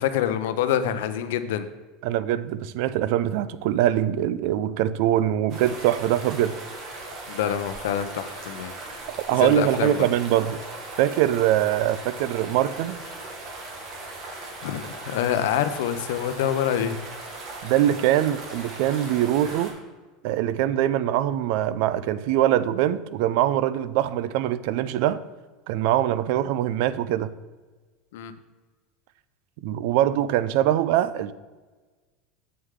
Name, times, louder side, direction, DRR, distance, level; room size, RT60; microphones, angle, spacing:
voice 1, 0.0-1.7 7.3-8.7 9.3-10.0 14.3-17.0 28.1-28.3, left 10 dB, 80° left, 11 dB, 0.6 m, -26 dB
voice 2, 2.0-6.5 9.3-10.6 11.0-13.0 17.6-19.7 20.2-25.2 25.7-27.3 29.6-31.3, right 12 dB, 55° right, 16 dB, 0.4 m, -23 dB
sound 1, 5.5-19.7, right 2 dB, 35° right, 1.5 m, -38 dB
8.0 x 6.5 x 3.6 m, 1.3 s
supercardioid pair, 170°, 0 cm